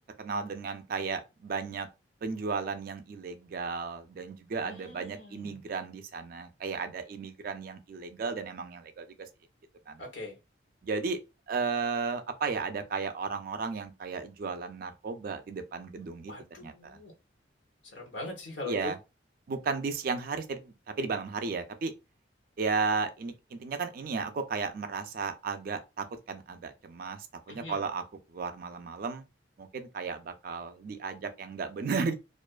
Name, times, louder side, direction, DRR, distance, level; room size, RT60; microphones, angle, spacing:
voice 1, 0.2-1.9 2.2-9.1 9.9-10.0 10.8-11.2 11.5-16.3 16.6-17.0 18.6-19.0 19.5-21.9 22.6-28.0 28.3-29.2 29.6-32.1, right 4 dB, 50° right, 0.3 m, -34 dB
voice 2, 4.6-5.6 10.0-10.3 16.3-17.1 17.9-18.9 27.5-27.8, left 2 dB, 75° left, 0.9 m, -41 dB
2.4 x 2.2 x 2.3 m
head